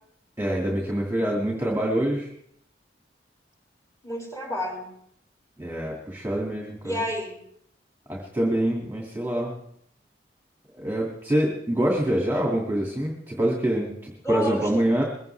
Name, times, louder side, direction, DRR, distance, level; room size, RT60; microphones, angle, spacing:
voice 1, 0.4-2.3 5.6-7.1 8.1-9.5 10.7-15.0, right 1 dB, 10° right, -1 dB, 2.2 m, -25 dB
voice 2, 4.0-4.9 6.8-7.4 14.2-14.9, left 1 dB, 20° left, 0 dB, 5.7 m, -31 dB
21.0 x 16.5 x 3.4 m, 0.68 s
head